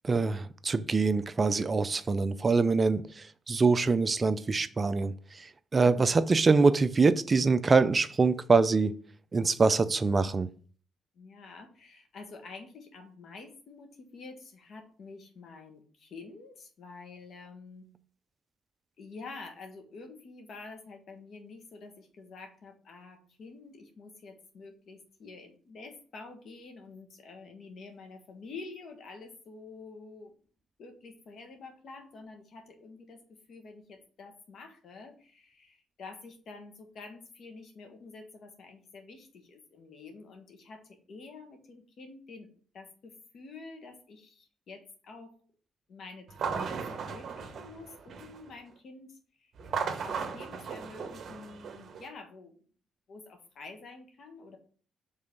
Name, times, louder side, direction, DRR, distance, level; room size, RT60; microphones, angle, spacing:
voice 1, 0.0-8.9 9.3-10.5, right 4 dB, 30° right, 0.4 m, -25 dB
voice 2, 5.8-6.4 11.1-17.8 19.0-30.3 30.8-42.5 42.7-45.3 45.9-49.5 50.0-52.5 53.1-54.6, left 3 dB, 60° left, 1.5 m, -48 dB
sound 1, 46.3-48.5 49.6-52.1, right 6 dB, 55° right, 1.0 m, -36 dB
5.4 x 3.9 x 5.2 m
cardioid pair, 90°, 0 cm